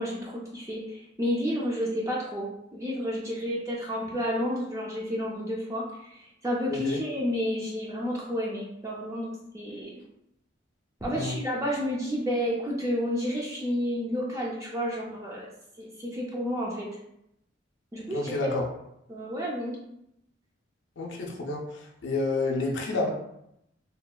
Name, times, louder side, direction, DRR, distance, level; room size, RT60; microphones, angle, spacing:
voice 1, 0.0-10.0 11.0-15.5 15.8-16.9 17.9-18.5 19.1-19.8, equal, 15° right, -4 dB, 0.3 m, -31 dB
voice 2, 18.1-18.6 21.0-23.1, left 2 dB, 65° left, 0 dB, 0.4 m, -29 dB
2.8 x 2.2 x 2.2 m, 0.79 s
head